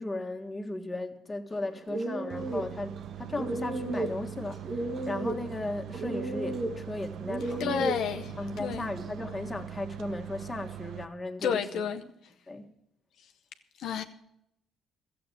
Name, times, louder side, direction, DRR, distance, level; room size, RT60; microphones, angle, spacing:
voice 1, 0.0-7.9 8.4-11.6 12.5-12.7, left 2 dB, 20° left, 1.6 m, -36 dB
sound 1, 1.5-9.3, right 2 dB, 50° right, 1.5 m, -35 dB
sound 2, 2.3-11.0, right 12 dB, 70° right, 0.6 m, -42 dB
voice 2, 7.4-8.9 11.4-12.0 13.2-13.3 13.8-14.0, left 7 dB, 70° left, 0.7 m, -31 dB
13.5 x 7.8 x 9.1 m
cardioid pair, 85°, 0 cm